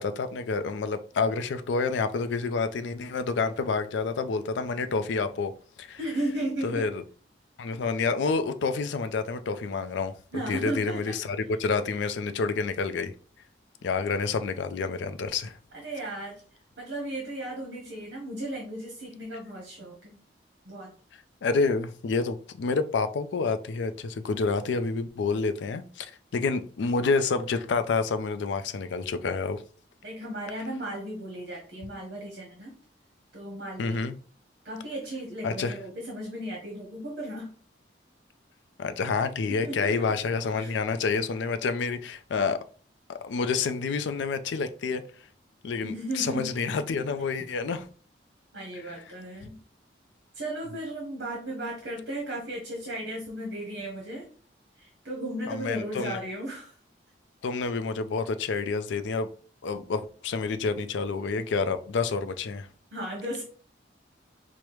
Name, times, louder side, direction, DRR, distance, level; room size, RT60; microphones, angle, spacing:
voice 1, 0.0-5.5 5.8-6.0 6.6-7.0 7.6-10.1 10.5-13.1 13.8-15.6 21.4-29.6 33.8-34.1 35.4-35.8 38.8-42.6 43.1-45.0 45.6-47.9 55.5-56.2 57.4-59.3 59.6-62.7, left 4 dB, 75° left, 0.4 m, -28 dB
voice 2, 6.0-6.9 10.3-11.2 15.7-16.4 16.8-20.2 20.6-20.9 30.0-32.7 33.3-34.0 34.6-37.5 39.5-40.1 40.5-40.7 45.8-46.6 48.5-49.6 50.3-54.3 54.8-56.8 62.9-63.4, right 1 dB, 60° right, 0.9 m, -35 dB
4.8 x 2.1 x 3.0 m
head